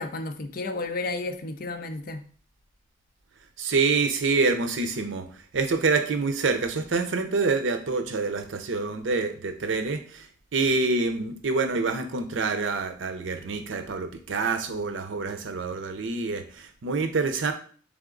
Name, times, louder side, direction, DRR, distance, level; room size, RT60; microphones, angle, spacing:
voice 1, 0.0-2.2, left 3 dB, 50° left, 7 dB, 0.5 m, -32 dB
voice 2, 3.6-5.3 5.5-17.5, right 4 dB, 85° right, 7 dB, 0.6 m, -26 dB
3.5 x 3.5 x 3.8 m, 0.43 s
head